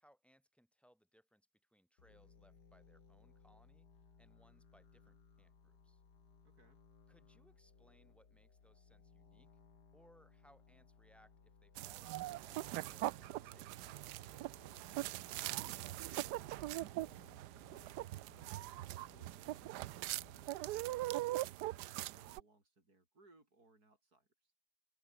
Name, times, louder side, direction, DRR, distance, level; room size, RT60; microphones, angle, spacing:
voice 1, 0.0-3.9 4.2-6.0 7.1-9.5 9.9-13.7, equal, ahead, 6.7 m, -69 dB
sound 1, 2.0-21.0, left 5 dB, 85° left, 2.9 m, -64 dB
voice 2, 6.4-6.8 14.5-20.0 20.6-24.5, right 2 dB, 70° right, 6.5 m, -70 dB
sound 2, 11.8-22.4, right 16 dB, 85° right, 1.2 m, -42 dB
open air
omnidirectional pair, 1.7 m